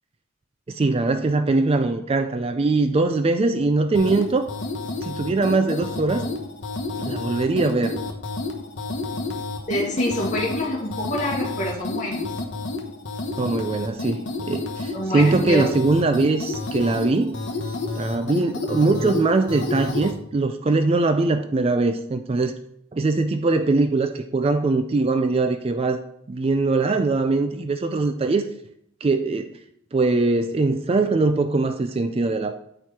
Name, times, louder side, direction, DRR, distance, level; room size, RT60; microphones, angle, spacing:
voice 1, 0.7-4.5 5.0-6.2 7.0-8.0 13.4-17.4 18.0-22.5 22.9-26.0 26.3-28.5 29.0-29.5 29.9-32.6, right 3 dB, 25° right, 8 dB, 0.3 m, -22 dB
sound 1, 3.9-20.2, left 3 dB, 60° left, 1.0 m, -30 dB
voice 2, 9.7-12.2 14.9-15.7, equal, 35° left, -4 dB, 2.1 m, -26 dB
8.8 x 4.4 x 4.7 m, 0.74 s
head